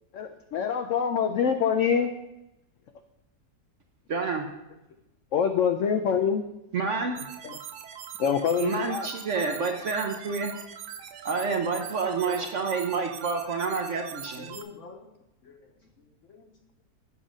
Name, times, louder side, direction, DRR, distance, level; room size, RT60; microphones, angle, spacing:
voice 1, 0.1-2.1 5.3-6.4 7.4-7.6 8.2-9.1, left 7 dB, 75° left, 6 dB, 0.7 m, -25 dB
voice 2, 4.1-4.4 6.7-7.2 8.6-10.5 11.2-14.5, right 4 dB, 60° right, 3 dB, 0.8 m, -28 dB
sound 1, 7.1-14.6, right 9 dB, 75° right, 1.2 m, -42 dB
voice 3, 12.2-12.5 14.4-15.1 15.4-16.5, left 4 dB, 50° left, 3 dB, 1.1 m, -46 dB
8.3 x 5.6 x 4.9 m, 0.93 s
omnidirectional pair, 1.8 m